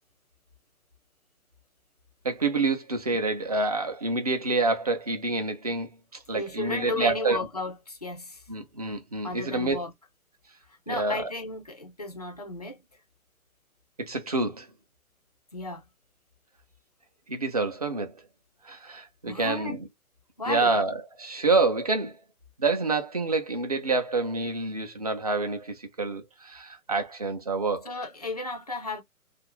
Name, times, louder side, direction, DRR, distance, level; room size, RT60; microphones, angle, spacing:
voice 1, 2.2-5.9 6.3-7.4 8.5-9.8 10.9-11.2 14.0-14.7 17.3-18.2 18.6-19.8 20.5-22.2 22.6-27.9, right 3 dB, 30° right, 0.4 m, -27 dB
voice 2, 6.3-8.4 9.2-9.9 10.7-13.0 15.5-15.9 19.2-19.8 20.4-20.8 27.8-29.0, left 2 dB, 30° left, 0.4 m, -34 dB
2.5 x 2.5 x 3.0 m
figure-of-eight pair, 145°, 44 cm